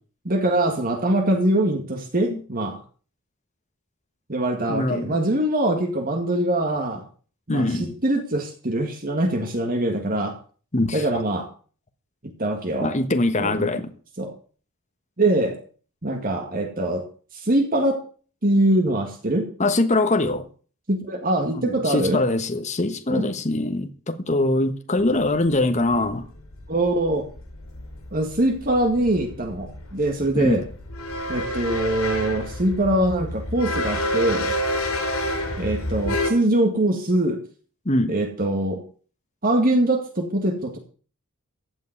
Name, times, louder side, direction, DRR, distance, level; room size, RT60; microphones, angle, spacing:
voice 1, 0.3-2.8 4.3-7.0 7.5-10.4 10.9-11.5 12.4-12.9 13.4-13.7 14.2-14.3 15.2-15.6 16.0-17.0 17.3-18.0 18.4-19.5 20.9-22.2 23.1-23.3 26.7-27.2 28.1-30.6 31.3-34.6 35.6-37.4 38.1-38.8 39.4-40.8, right 1 dB, 40° right, 2.0 m, -23 dB
voice 2, 4.7-5.2 7.5-7.9 10.7-11.2 12.8-13.9 19.6-20.5 21.5-26.2 30.3-30.6 37.8-38.1, left 2 dB, 30° left, 1.3 m, -23 dB
sound 1, 25.0-25.1 25.3-36.3, left 1 dB, 70° left, 5.5 m, -29 dB
15.5 x 5.5 x 9.7 m
head